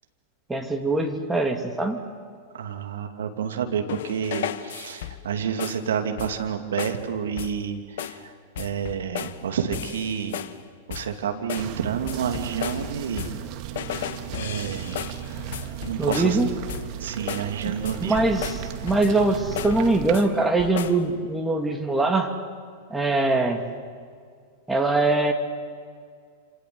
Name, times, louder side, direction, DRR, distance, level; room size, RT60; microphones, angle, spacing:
voice 1, 0.5-2.0 16.0-16.5 17.7-17.8 18.0-22.3 22.9-23.6 24.7-25.3, right 2 dB, 10° right, 4 dB, 2.8 m, -22 dB
voice 2, 2.5-10.4 10.9-13.3 14.3-15.0 15.8-16.4 17.0-18.2, right 7 dB, 70° right, 6 dB, 2.7 m, -29 dB
sound 1, 3.9-5.3 5.6-5.9 6.2-6.5 6.8-7.1 7.4-7.6 8.0-8.3 8.6-9.4 9.7-10.6 10.9-11.2 11.5-13.5 13.8-16.4 16.7-17.0 17.3-17.5 17.8-19.2 19.6-20.3 20.6-21.1, left 11 dB, 65° left, 1.3 m, -35 dB
sound 2, 11.6-20.2, right 11 dB, 45° right, 2.0 m, -36 dB
27.5 x 27.0 x 8.0 m, 2.1 s
hypercardioid pair, 100°, 0 cm